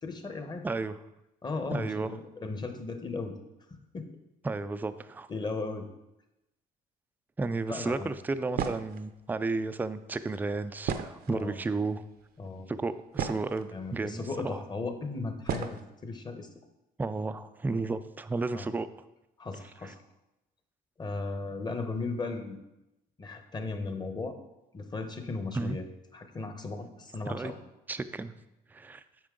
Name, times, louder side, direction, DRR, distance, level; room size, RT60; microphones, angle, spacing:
voice 1, 0.0-0.6 1.4-3.3 3.9-4.1 5.3-5.9 7.7-8.1 11.3-11.6 12.4-12.7 13.7-16.5 18.5-18.7 19.4-20.0 21.0-22.6 23.2-24.4 24.7-25.8 26.1-27.5, left 3 dB, 25° left, 7 dB, 1.0 m, -36 dB
voice 2, 0.6-1.0 1.7-2.1 4.4-5.3 7.4-12.0 12.7-14.6 17.0-18.9 19.8-19.9 25.5-25.8 27.3-27.5 27.9-28.3 28.7-29.0, right 3 dB, 10° right, 12 dB, 0.3 m, -33 dB
sound 1, 8.5-9.0 10.8-11.6 12.4-12.5 12.9-13.7 14.6-14.7 15.5-15.8, right 7 dB, 65° right, 0.6 m, -33 dB
8.7 x 5.5 x 3.8 m, 0.93 s
cardioid pair, 110°, 17 cm